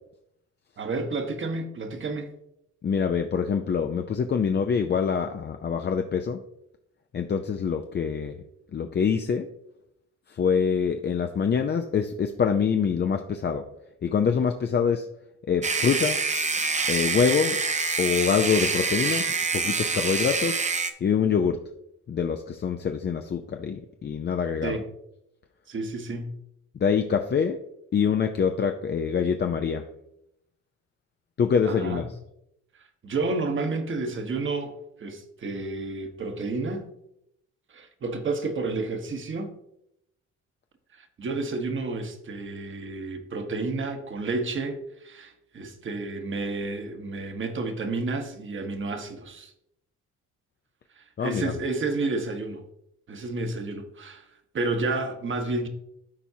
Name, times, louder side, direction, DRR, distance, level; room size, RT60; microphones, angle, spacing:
voice 1, 0.8-2.3 24.6-24.8 25.7-26.3 31.6-32.1 33.0-36.9 37.7-39.5 40.9-49.5 51.0-52.6 53.1-54.2 54.5-55.7, right 3 dB, 40° right, 1.2 m, -31 dB
voice 2, 2.8-6.4 7.1-8.4 8.7-9.5 10.3-13.6 14.0-15.1 15.5-16.2 16.9-17.6 18.0-19.3 19.5-20.6 21.0-21.6 22.1-24.8 26.8-27.6 27.9-29.8 31.4-32.0 51.2-51.5, left 6 dB, 35° left, 0.5 m, -25 dB
sound 1, 15.6-20.9, right 4 dB, 25° right, 0.7 m, -26 dB
12.5 x 4.5 x 2.8 m
cardioid pair, 90°, 30 cm